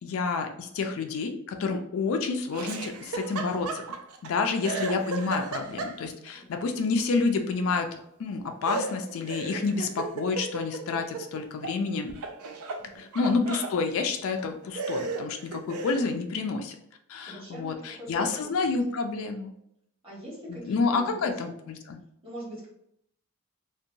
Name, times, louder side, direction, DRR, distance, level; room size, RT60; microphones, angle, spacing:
voice 1, 0.0-3.8 4.2-7.9 8.2-12.1 12.9-16.8 17.1-19.5 20.5-22.0, left 4 dB, 65° left, 5 dB, 0.3 m, -29 dB
Laughter, 2.5-4.3 4.6-6.3 8.6-11.8 12.1-13.8 14.4-14.5 14.8-16.1, right 3 dB, 75° right, 0.4 m, -35 dB
voice 2, 6.3-6.7 12.8-13.0 17.3-18.8 20.0-21.3 22.2-22.7, equal, 25° right, -6 dB, 1.2 m, -42 dB
2.7 x 2.2 x 2.6 m, 0.74 s
head